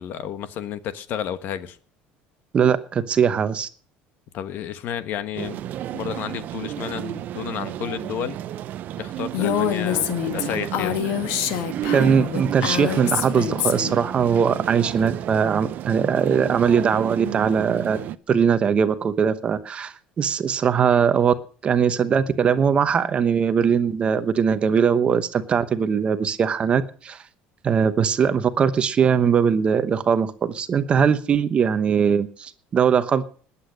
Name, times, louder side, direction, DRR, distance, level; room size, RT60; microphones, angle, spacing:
voice 1, 0.0-1.8 4.3-5.6 5.9-8.4 9.0-11.0, left 9 dB, 50° left, 1.3 m, -31 dB
voice 2, 2.5-3.7 11.9-18.0 18.3-21.3 21.6-27.2 27.6-33.3, right 7 dB, 25° right, 1.0 m, -20 dB
sound 1, 5.4-18.2, right 12 dB, 45° right, 0.7 m, -31 dB
Female speech woman speaking, 9.3-14.0, left 11 dB, 70° left, 1.8 m, -26 dB
20.0 x 8.6 x 6.4 m
cardioid pair, 160°, 4 cm